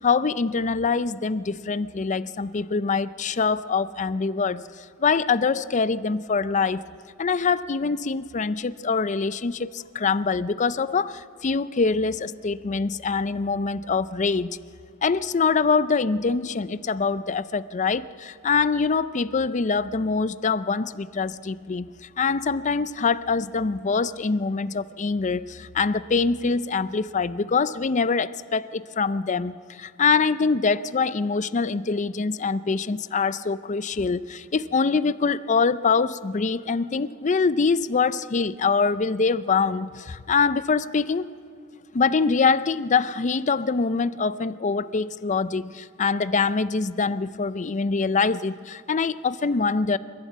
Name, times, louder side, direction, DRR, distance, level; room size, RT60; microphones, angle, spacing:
voice 1, 0.0-4.6 5.0-6.8 7.2-14.5 15.0-21.9 22.2-41.3 41.9-50.0, left 4 dB, 35° left, 15 dB, 0.5 m, -24 dB
28.0 x 11.5 x 8.2 m, 2.3 s
head